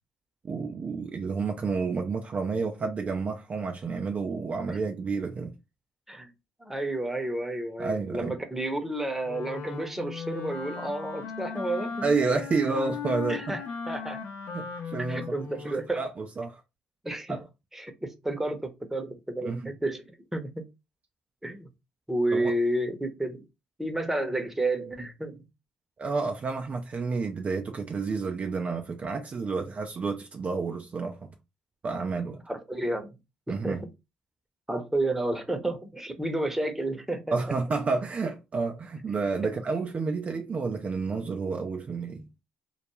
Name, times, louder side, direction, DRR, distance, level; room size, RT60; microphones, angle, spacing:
voice 1, 0.4-5.5 7.8-8.3 12.0-13.4 14.5-16.6 17.3-17.4 19.4-19.6 22.3-22.5 26.0-31.2 31.8-32.4 33.5-33.8 37.3-42.3, right 4 dB, 40° right, 0.4 m, -30 dB
voice 2, 6.6-12.1 13.3-14.2 15.1-16.0 17.0-17.4 17.7-20.0 20.3-20.6 21.4-21.7 22.1-23.4 23.8-25.4 32.5-33.1 33.5-33.8 34.7-37.3, right 1 dB, 10° right, 0.7 m, -31 dB
Wind instrument woodwind instrument, 9.2-15.9, left 6 dB, 65° left, 0.5 m, -37 dB
2.2 x 2.1 x 2.9 m
hypercardioid pair, 55°, 4 cm